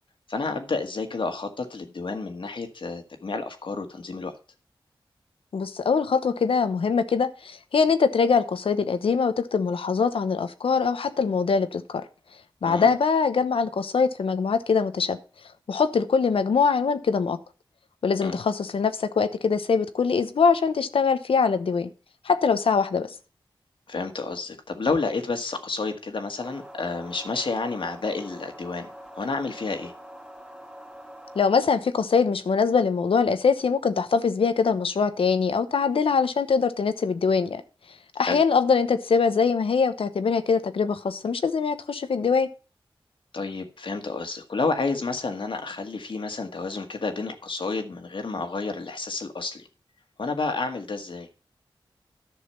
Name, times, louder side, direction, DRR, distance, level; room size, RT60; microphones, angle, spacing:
voice 1, 0.3-4.3 12.7-12.9 18.2-18.4 23.9-29.9 38.2-38.4 43.3-49.7 50.2-51.3, left 3 dB, 65° left, 1.7 m, -30 dB
voice 2, 5.5-12.0 12.6-15.2 15.7-17.4 18.0-21.9 22.2-23.1 31.4-37.6 38.2-42.5, left 5 dB, 90° left, 0.9 m, -23 dB
sound 1, 26.4-31.4, equal, 10° right, 2.1 m, -44 dB
11.0 x 6.4 x 5.6 m
cardioid pair, 60°, 9 cm